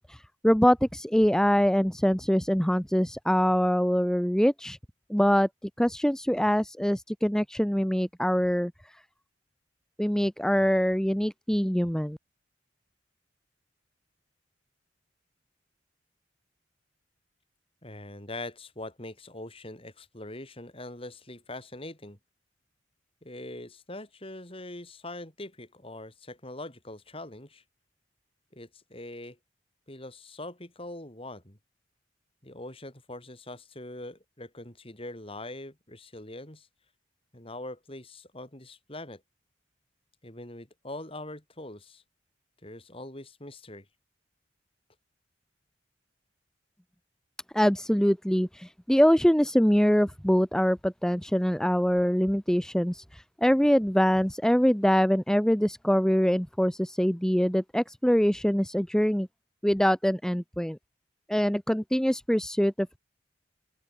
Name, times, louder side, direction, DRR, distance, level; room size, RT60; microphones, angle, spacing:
voice 1, 0.0-4.8 5.1-5.5 5.8-8.7 10.0-12.2 47.5-59.3 59.6-60.8 61.3-63.0, equal, 5° left, 0.8 m, -24 dB
voice 2, 17.8-22.2 23.2-27.6 28.5-29.4 29.9-31.6 32.4-36.7 37.3-39.2 40.2-42.0 42.6-43.9, left 2 dB, 30° left, 5.4 m, -42 dB
open air
head